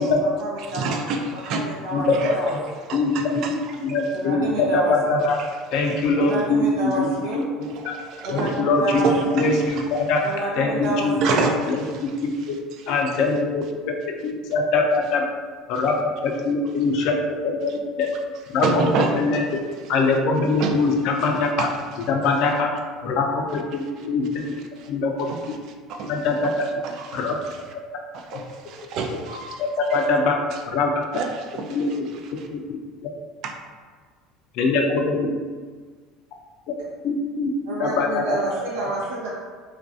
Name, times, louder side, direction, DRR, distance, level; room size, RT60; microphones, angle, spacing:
voice 1, 0.0-1.0 1.5-2.6 4.1-4.9 6.2-7.4 8.2-9.1 9.4-9.5 10.2-11.5 37.7-39.3, right 2 dB, 90° right, -6 dB, 0.6 m, -29 dB
voice 2, 0.6-1.7 2.1-2.4 2.9-3.8 5.3-6.1 6.9-7.0 7.6-8.6 9.0-10.4 11.2-13.2 15.7-15.8 17.7-18.2 18.6-19.5 20.4-20.8 21.2-21.8 23.7-24.1 24.3-24.9 25.3-27.6 28.1-29.5 29.9-30.0 30.5-30.6 31.1-32.5 33.4-33.5, right 3 dB, 60° right, 3 dB, 0.3 m, -30 dB
voice 3, 2.9-3.6 3.8-5.4 5.7-7.7 8.3-9.1 9.4-9.8 10.1-10.2 10.6-11.4 12.0-12.5 12.9-13.6 14.0-15.2 15.7-15.9 16.4-17.7 18.0-18.1 18.5-18.7 19.1-19.4 19.9-21.7 22.1-22.7 23.0-24.6 24.9-25.3 26.1-26.5 27.1-27.3 29.9-30.4 30.7-30.9 31.7-31.9 32.5-32.6 33.0-33.1 34.6-35.3 37.0-37.5 37.8-38.2, left 3 dB, 65° left, 2 dB, 0.4 m, -22 dB
2.5 x 2.2 x 2.5 m, 1.5 s
supercardioid pair, 95°, 0 cm